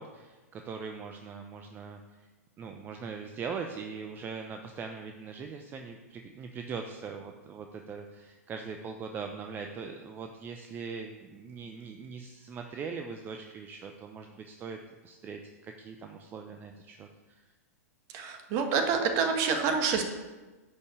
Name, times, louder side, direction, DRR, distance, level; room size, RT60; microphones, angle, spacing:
voice 1, 0.0-2.0 2.6-14.8 15.0-17.4, right 5 dB, 25° right, 4 dB, 0.8 m, -41 dB
voice 2, 18.1-20.0, right 5 dB, 40° right, 5 dB, 1.6 m, -27 dB
11.0 x 5.4 x 6.7 m, 1.2 s
figure-of-eight pair, 105°, 8 cm